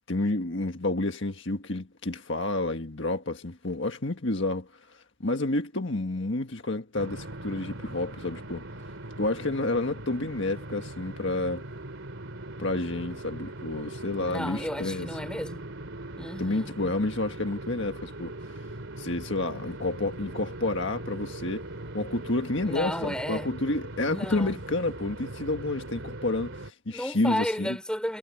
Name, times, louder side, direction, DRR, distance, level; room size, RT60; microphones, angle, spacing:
voice 1, 0.1-8.7 9.2-11.6 12.6-15.1 16.4-18.3 19.0-21.7 21.9-27.8, left 2 dB, 55° left, 1.7 m, -30 dB
sound 1, 7.0-26.7, right 2 dB, 65° right, 3.2 m, -40 dB
voice 2, 14.2-15.7 16.2-16.7 22.6-23.5 24.1-24.6 26.9-28.2, equal, 5° left, 4.5 m, -33 dB
head